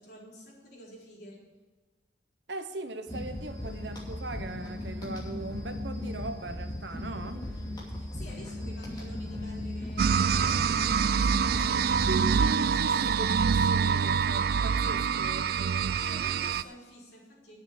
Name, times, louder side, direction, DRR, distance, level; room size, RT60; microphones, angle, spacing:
voice 1, 0.0-1.4 7.2-7.4 7.9-12.4 12.9-13.3 15.9-17.6, equal, 55° left, -5 dB, 4.3 m, -49 dB
voice 2, 2.5-7.4 12.1-16.0, right 2 dB, 75° right, 8 dB, 0.9 m, -39 dB
sound 1, 3.1-12.4, left 1 dB, 20° left, 2.6 m, -37 dB
sound 2, 10.0-16.6, right 6 dB, 55° right, 0.3 m, -26 dB
9.5 x 7.1 x 8.3 m, 1.3 s
head